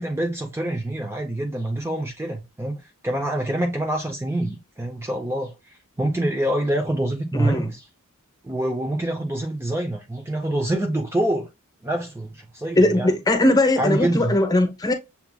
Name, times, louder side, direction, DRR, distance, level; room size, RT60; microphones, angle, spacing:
voice 1, 0.0-5.5 6.0-7.9 8.4-11.5 11.8-13.1 13.8-14.3, right 1 dB, 10° right, 0.5 m, -26 dB
voice 2, 7.4-7.7 12.8-14.9, left 1 dB, 20° left, 0.9 m, -19 dB
6.8 x 2.8 x 2.2 m
head